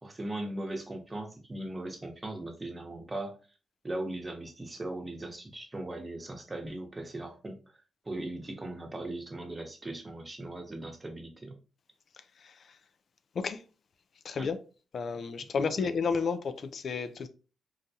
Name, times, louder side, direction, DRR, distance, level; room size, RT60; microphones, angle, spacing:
voice 1, 0.0-3.4 3.8-7.6 8.0-11.5 14.4-14.5 15.8-15.9, right 1 dB, 25° right, 0.9 m, -39 dB
voice 2, 12.1-12.8 13.3-13.6 14.2-14.6 14.9-17.3, left 5 dB, 60° left, 0.4 m, -32 dB
3.9 x 2.2 x 2.7 m
supercardioid pair, 55°, 0 cm